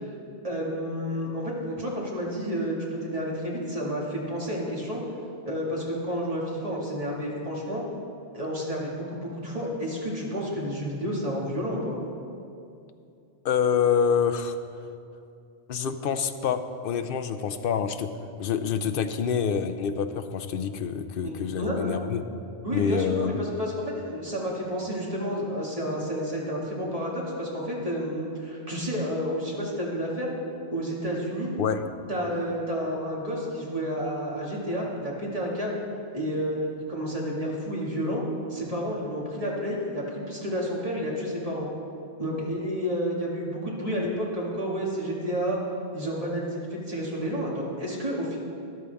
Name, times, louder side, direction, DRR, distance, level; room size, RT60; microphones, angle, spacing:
voice 1, 0.4-5.0 5.5-7.8 8.3-12.0 21.2-22.0 22.6-30.3 30.7-31.5 32.1-35.8 36.1-38.2 38.5-41.7 42.2-45.6 45.9-48.4, equal, 30° right, -4 dB, 2.2 m, -30 dB
voice 2, 13.4-14.6 15.7-18.1 18.4-22.3 22.7-23.4 31.6-31.8, left 7 dB, 60° left, 9 dB, 0.7 m, -26 dB
13.5 x 11.0 x 3.5 m, 2.6 s
omnidirectional pair, 1.1 m